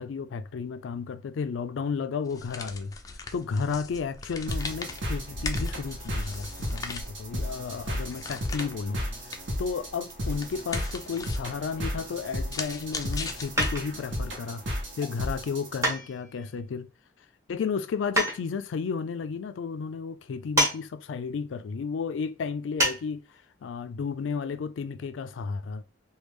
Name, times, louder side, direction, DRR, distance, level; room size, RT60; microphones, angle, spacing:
voice 1, 0.0-2.9 3.3-9.0 9.6-14.6 15.0-16.9 17.5-23.2 23.6-25.8, left 5 dB, 85° left, 0.4 m, -33 dB
sound 1, 2.3-14.1, left 3 dB, 20° left, 0.4 m, -40 dB
sound 2, 4.5-15.8, equal, 70° right, 1.0 m, -34 dB
sound 3, 13.6-14.1 15.8-16.5 18.2-18.4 20.6-20.8 21.1-21.2 22.8-23.0 23.3-23.4, equal, 15° right, 0.9 m, -26 dB
3.1 x 2.3 x 3.4 m
head